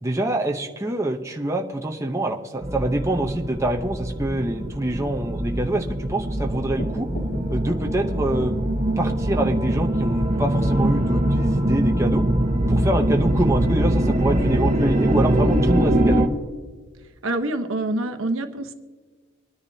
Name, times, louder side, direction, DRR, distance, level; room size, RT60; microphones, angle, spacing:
voice 1, 0.0-7.1 7.5-8.5 9.0-12.2 12.7-16.2, right 1 dB, 15° right, 2 dB, 0.8 m, -25 dB
sound 1, 2.6-16.3, right 1 dB, 35° right, 1.1 m, -22 dB
sound 2, 6.7-9.7, equal, 90° left, 3.4 m, -37 dB
voice 2, 17.2-18.7, right 2 dB, 70° right, 6 dB, 1.0 m, -26 dB
23.5 x 10.0 x 2.8 m, 1.4 s
head